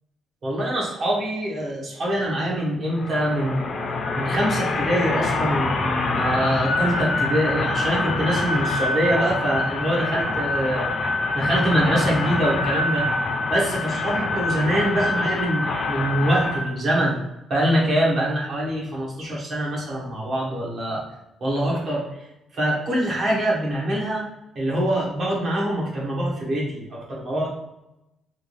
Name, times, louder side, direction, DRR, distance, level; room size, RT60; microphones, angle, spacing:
voice 1, 0.4-3.8 4.1-10.9 11.3-13.1 13.5-17.2 17.5-21.0 21.4-22.3 22.5-24.3 24.5-27.5, right 1 dB, 50° right, -4 dB, 1.5 m, -24 dB
sound 1, 2.9-16.6, left 3 dB, 55° left, 0.7 m, -25 dB
3.6 x 2.7 x 3.2 m, 0.91 s
cardioid pair, 90°, 0 cm